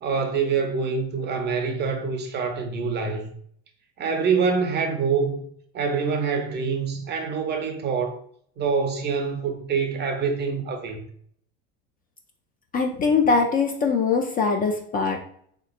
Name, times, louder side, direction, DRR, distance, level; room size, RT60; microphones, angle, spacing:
voice 1, 0.0-3.3 4.0-5.4 5.7-8.2 8.6-11.0, right 5 dB, 30° right, 0.5 m, -25 dB
voice 2, 12.7-15.2, left 4 dB, 25° left, 0.4 m, -22 dB
3.3 x 3.0 x 2.4 m
supercardioid pair, 110°, 34 cm